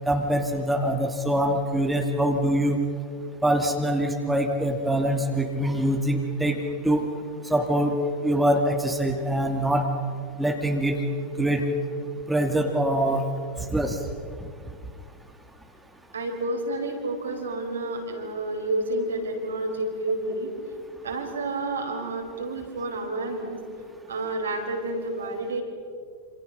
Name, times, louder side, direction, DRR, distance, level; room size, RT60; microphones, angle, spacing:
voice 1, 0.1-2.8 3.4-6.6 6.8-7.1 7.5-7.9 8.2-9.9 10.4-11.0 11.4-11.6 12.3-13.2 13.7-14.0, right 1 dB, 5° right, 2 dB, 2.4 m, -24 dB
voice 2, 16.1-20.5 21.0-23.6 24.1-25.6, right 2 dB, 70° right, 2 dB, 4.7 m, -30 dB
28.0 x 27.5 x 5.7 m, 2.2 s
figure-of-eight pair, 90°, 0 cm